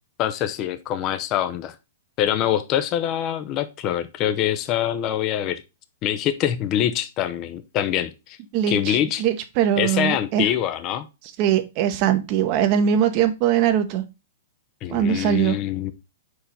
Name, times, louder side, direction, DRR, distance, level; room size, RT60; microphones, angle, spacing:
voice 1, 0.2-1.7 2.2-5.6 6.0-8.4 8.7-9.2 9.8-11.1 14.8-15.9, left 11 dB, 35° left, 0.7 m, -24 dB
voice 2, 8.5-10.5 11.4-14.0 14.9-15.6, right 9 dB, 45° right, 1.0 m, -21 dB
5.0 x 4.8 x 4.1 m
hypercardioid pair, 115°, 0 cm